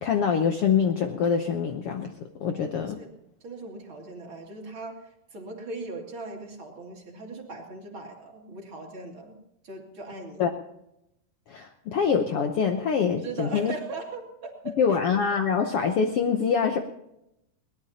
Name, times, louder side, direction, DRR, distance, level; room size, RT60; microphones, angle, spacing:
voice 1, 0.0-2.1 2.4-3.0 10.4-10.5 11.5-13.7 14.8-16.8, left 6 dB, 85° left, 5 dB, 1.2 m, -24 dB
voice 2, 3.4-9.4 9.6-10.5 13.2-15.0, right 3 dB, 40° right, 0 dB, 3.0 m, -39 dB
22.0 x 19.0 x 2.9 m, 0.82 s
omnidirectional pair, 3.9 m